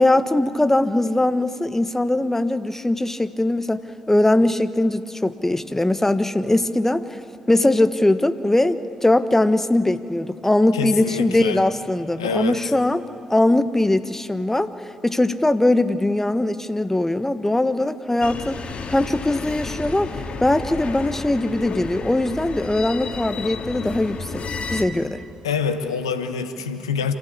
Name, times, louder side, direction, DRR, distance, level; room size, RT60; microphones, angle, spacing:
voice 1, 0.0-7.0 7.5-14.7 15.0-18.6 18.9-24.4 24.7-25.2, left 1 dB, 15° left, 11 dB, 1.2 m, -21 dB
voice 2, 10.7-11.6 12.2-12.6 25.4-27.1, left 6 dB, 90° left, 8 dB, 1.1 m, -26 dB
sound 1, 18.2-24.8, left 4 dB, 45° left, 2.2 m, -32 dB
27.0 x 15.0 x 8.7 m, 2.3 s
hypercardioid pair, 45°, 3 cm